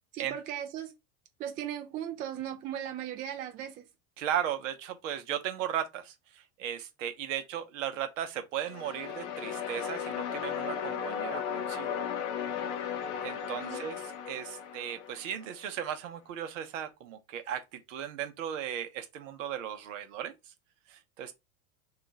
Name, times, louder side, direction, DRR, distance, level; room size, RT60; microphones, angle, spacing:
voice 1, 0.1-0.9 1.4-3.8 13.6-13.9, right 10 dB, 25° right, 0.3 m, -37 dB
voice 2, 4.2-12.0 13.2-20.5 20.9-21.3, right 10 dB, 65° right, 0.8 m, -36 dB
sound 1, 8.6-15.6, left 8 dB, 55° left, 0.7 m, -36 dB
2.9 x 2.4 x 3.9 m
hypercardioid pair, 90°, 41 cm